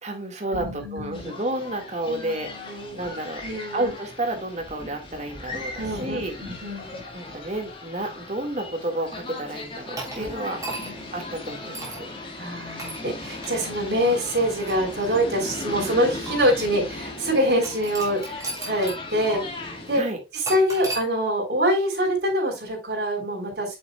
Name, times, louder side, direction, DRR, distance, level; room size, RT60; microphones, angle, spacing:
voice 1, 0.0-2.5 2.9-3.4 3.7-6.3 7.1-10.6 11.1-12.1 19.9-20.2, right 1 dB, 40° right, 5 dB, 1.9 m, -31 dB
voice 2, 0.5-1.3 2.1-3.9 5.8-7.0 10.2-10.3 10.8-11.1 12.4-19.4 19.9-20.0 20.3-23.7, equal, 55° right, -2 dB, 4.3 m, -25 dB
sound 1, 1.1-20.0, left 2 dB, 30° left, 1.8 m, -38 dB
sound 2, 10.0-11.1 11.7-12.1 12.8-13.0 13.4-13.6 14.4-15.5 16.3-16.4 17.6-19.0 19.3-19.4 20.5-21.1, right 2 dB, 15° right, 3.3 m, -36 dB
8.5 x 7.2 x 2.3 m, 0.26 s
head